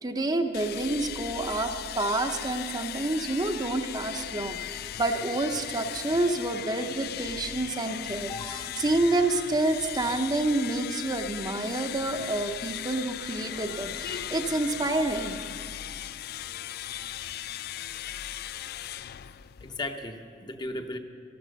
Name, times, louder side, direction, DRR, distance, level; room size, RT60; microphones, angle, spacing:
voice 1, 0.0-15.4, right 2 dB, 20° right, 6 dB, 0.6 m, -28 dB
sound 1, 0.5-20.0, left 11 dB, 55° left, 0.3 m, -38 dB
voice 2, 8.3-8.8 19.6-21.0, left 2 dB, 25° left, 6 dB, 0.8 m, -36 dB
13.0 x 13.0 x 6.4 m, 2.4 s
head